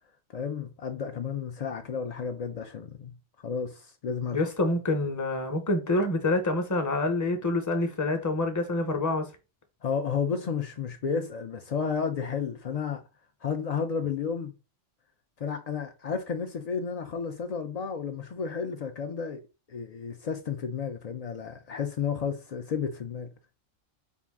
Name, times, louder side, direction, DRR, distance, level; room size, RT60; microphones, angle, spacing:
voice 1, 0.3-3.2 3.4-4.5 9.8-13.0 13.4-14.5 15.4-19.4 19.7-23.3, left 6 dB, 85° left, 0.3 m, -32 dB
voice 2, 4.3-9.3, left 2 dB, 20° left, 0.5 m, -27 dB
4.5 x 2.5 x 3.5 m
omnidirectional pair, 1.3 m